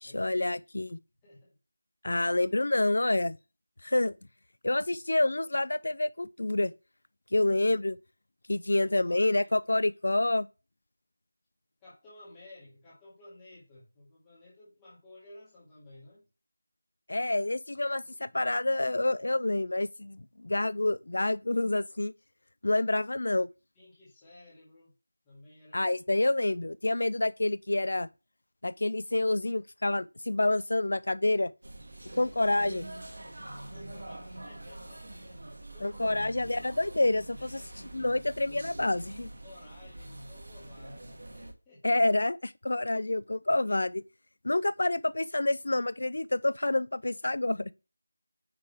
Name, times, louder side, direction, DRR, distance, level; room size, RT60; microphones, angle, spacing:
voice 1, 0.0-1.0 2.0-3.4 3.8-4.2 4.6-6.7 7.3-8.0 8.5-10.5 17.1-22.1 22.6-23.5 25.7-28.1 28.6-31.5 32.2-32.9 35.8-37.6 37.9-39.3 41.8-44.0 44.4-47.7, left 2 dB, 55° left, 0.4 m, -28 dB
voice 2, 1.2-1.6 8.8-9.5 11.8-16.3 23.8-24.9 25.2-25.9 33.6-36.1 36.4-36.7 37.4-37.8 39.4-42.0, left 2 dB, 5° left, 1.7 m, -54 dB
sound 1, 31.6-41.5, right 1 dB, 80° right, 1.6 m, -45 dB
9.4 x 3.7 x 3.4 m
figure-of-eight pair, 180°, 0 cm